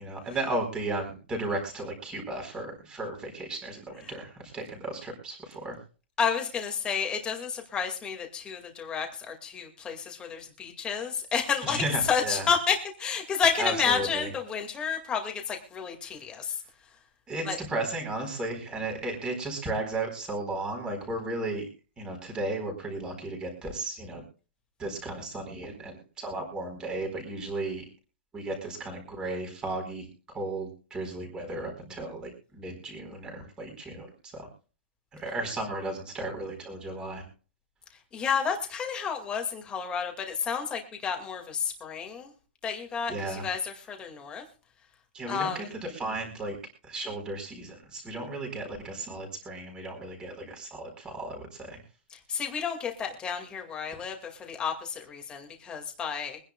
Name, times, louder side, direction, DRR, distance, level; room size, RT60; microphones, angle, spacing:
voice 1, 0.0-5.8 11.6-12.5 13.6-14.3 17.3-21.6 22.0-24.2 24.8-27.8 28.3-30.1 30.3-34.5 35.1-37.2 43.1-43.5 45.1-46.6 46.8-51.8, right 2 dB, 10° right, 3 dB, 4.4 m, -34 dB
voice 2, 6.2-16.6 17.5-17.6 38.1-42.3 42.6-44.4 45.3-45.7 52.1-56.4, left 6 dB, 15° left, 3 dB, 2.2 m, -31 dB
24.0 x 10.5 x 2.4 m, 0.37 s
hypercardioid pair, 165°, 7 cm